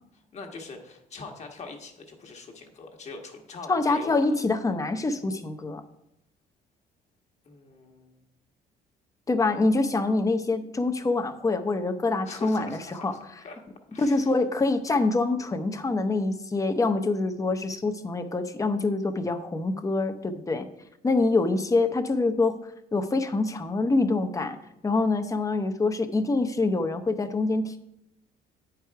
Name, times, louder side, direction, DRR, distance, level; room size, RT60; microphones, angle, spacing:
voice 1, 0.3-4.3 7.4-8.3 12.2-13.6 13.9-14.3, left 3 dB, 40° left, 3 dB, 1.4 m, -42 dB
voice 2, 3.7-5.8 9.3-13.1 14.0-20.6 21.0-22.6 22.9-24.6 24.8-27.8, left 3 dB, 20° left, 8 dB, 0.7 m, -25 dB
8.9 x 4.8 x 4.7 m, 0.80 s
cardioid pair, 110°, 17 cm